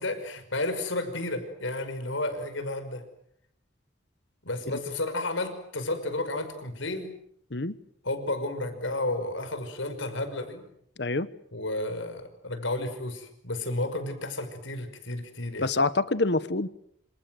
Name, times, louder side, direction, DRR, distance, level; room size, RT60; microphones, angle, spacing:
voice 1, 0.0-3.0 4.4-7.1 8.0-10.6 11.5-15.7, left 2 dB, 85° left, 8 dB, 5.7 m, -32 dB
voice 2, 11.0-11.3 15.6-16.7, left 3 dB, 60° left, 15 dB, 1.1 m, -26 dB
27.5 x 27.0 x 7.8 m, 0.72 s
head